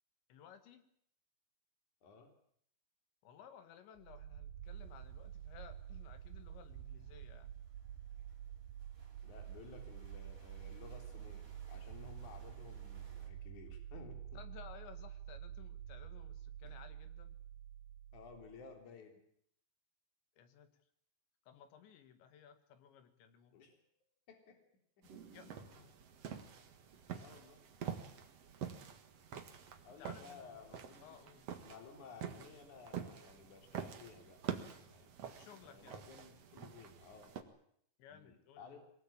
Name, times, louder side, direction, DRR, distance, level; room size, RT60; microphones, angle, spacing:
voice 1, 0.3-0.9 3.2-7.5 14.3-17.4 20.4-20.7 21.5-23.6 25.1-26.0 30.0-30.6 31.0-31.5 35.4-36.0 38.0-38.8, left 9 dB, 75° left, 9 dB, 4.0 m, -58 dB
sound 1, 4.0-18.8, right 10 dB, 80° right, 1.9 m, -49 dB
sound 2, 4.6-13.3, right 5 dB, 20° right, 3.4 m, -64 dB
voice 2, 9.2-14.4 18.1-19.2 23.5-23.8 24.3-24.6 27.1-27.6 29.8-31.2 31.6-35.1 35.6-37.4 38.1-38.8, left 5 dB, 45° left, 4 dB, 4.7 m, -56 dB
sound 3, 25.0-37.4, right 8 dB, 55° right, 1.8 m, -47 dB
23.0 x 19.5 x 8.8 m, 0.68 s
omnidirectional pair, 5.4 m